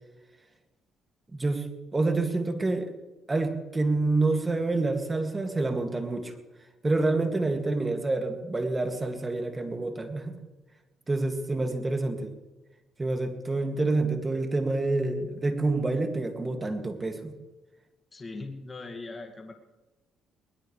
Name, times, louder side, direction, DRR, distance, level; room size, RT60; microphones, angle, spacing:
voice 1, 1.3-1.7 1.9-2.9 3.3-6.3 6.8-10.4 11.1-12.3 13.0-17.3, right 2 dB, 25° right, 5 dB, 2.2 m, -27 dB
voice 2, 18.1-19.5, left 3 dB, 30° left, 3 dB, 2.1 m, -40 dB
20.5 x 20.0 x 3.3 m, 1.1 s
cardioid pair, 80°, 0 cm